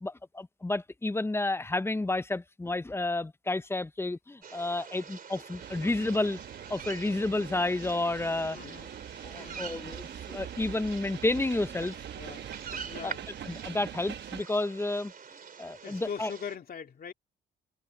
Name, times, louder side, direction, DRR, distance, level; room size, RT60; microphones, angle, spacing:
voice 1, 0.0-6.4 6.7-8.6 9.2-11.9 13.0-13.1 13.5-15.1 15.6-16.3, left 2 dB, 10° left, 0.7 m, -31 dB
sound 1, 4.4-16.6, right 6 dB, 45° right, 3.3 m, -46 dB
sound 2, 5.6-14.4, right 9 dB, 60° right, 1.1 m, -43 dB
voice 2, 8.5-8.9 9.3-9.7 12.1-12.5 12.8-13.3 15.8-17.1, left 7 dB, 50° left, 2.9 m, -41 dB
cardioid pair, 90°, 20 cm